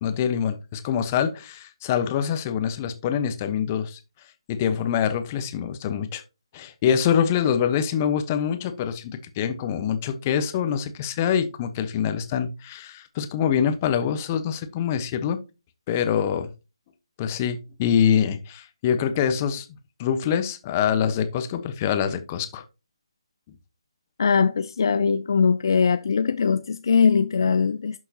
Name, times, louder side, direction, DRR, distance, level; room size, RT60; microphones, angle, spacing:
voice 1, 0.0-4.0 4.5-6.2 6.5-15.4 15.9-16.5 17.2-19.7 20.0-22.6, left 8 dB, 25° left, 1.2 m, -25 dB
voice 2, 24.2-28.0, left 5 dB, 50° left, 0.5 m, -21 dB
11.5 x 6.2 x 2.9 m
figure-of-eight pair, 150°, 3 cm